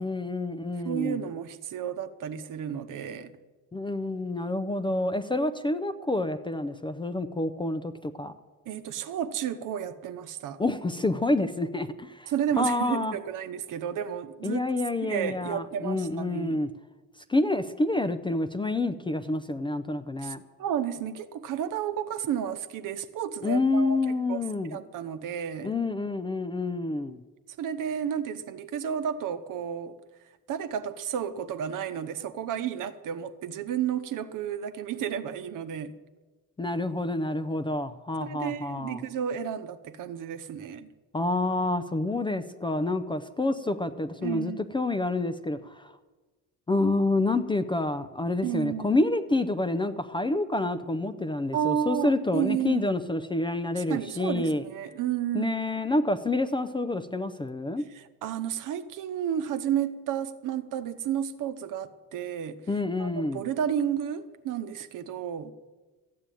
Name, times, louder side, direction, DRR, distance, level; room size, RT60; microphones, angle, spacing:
voice 1, 0.0-1.3 3.7-8.3 10.6-13.1 14.4-16.7 17.3-20.4 23.4-24.8 25.6-27.2 36.6-39.0 41.1-45.9 46.7-54.6 55.3-57.8 62.7-63.4, left 2 dB, 15° left, 0.5 m, -28 dB
voice 2, 0.8-3.3 8.7-10.6 12.3-14.6 15.0-16.6 20.2-24.4 24.7-25.7 27.6-30.0 30.5-36.0 38.2-40.9 44.2-44.7 48.4-48.9 51.5-52.9 53.7-55.6 57.9-62.6 63.0-65.5, right 9 dB, 55° right, 0.9 m, -32 dB
14.0 x 8.5 x 9.1 m
cardioid pair, 150°, 37 cm